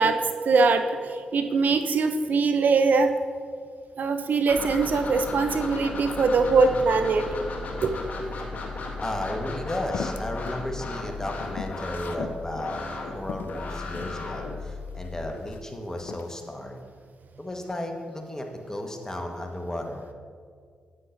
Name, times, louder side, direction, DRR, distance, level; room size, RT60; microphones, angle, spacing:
voice 1, 0.0-3.1 4.0-7.3 7.8-7.9, right 4 dB, 60° right, 8 dB, 0.5 m, -22 dB
sound 1, 4.5-15.3, left 3 dB, 50° left, 1.7 m, -35 dB
voice 2, 9.0-16.8 17.4-20.1, left 1 dB, 15° left, 3 dB, 1.3 m, -34 dB
sound 2, 9.9-10.6 11.0-12.4 12.9-13.0 13.3-14.2 14.9-15.6 16.0-16.3, left 7 dB, 65° left, 0.4 m, -38 dB
9.6 x 8.5 x 2.6 m, 2.1 s
hypercardioid pair, 40°, 3 cm